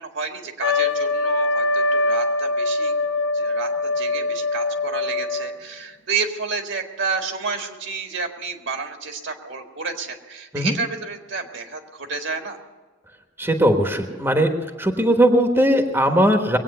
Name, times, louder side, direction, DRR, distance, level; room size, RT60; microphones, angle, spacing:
voice 1, 0.0-2.9 3.3-12.6, right 4 dB, 65° right, 4 dB, 1.8 m, -30 dB
Trumpet, 0.6-5.6, left 2 dB, 85° left, 1.6 m, -23 dB
voice 2, 13.4-14.5 14.8-16.6, right 1 dB, 10° right, 5 dB, 1.2 m, -18 dB
21.5 x 8.8 x 6.7 m, 1.4 s
head